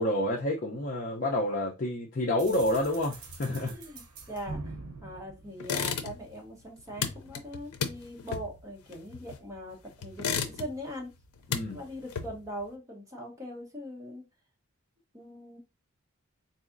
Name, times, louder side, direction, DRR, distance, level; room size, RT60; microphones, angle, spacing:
voice 1, 0.0-3.7 11.5-11.8, left 1 dB, 40° left, 0.6 m, -29 dB
sound 1, 2.4-6.2, right 3 dB, 80° right, 0.7 m, -44 dB
voice 2, 3.7-4.8 5.0-11.1 11.7-14.2 15.1-15.6, equal, 15° right, 0.9 m, -41 dB
sound 2, 5.6-6.4 6.6-9.6 10.0-10.9 11.2-12.6, left 6 dB, 85° left, 0.5 m, -34 dB
3.9 x 2.7 x 2.5 m
head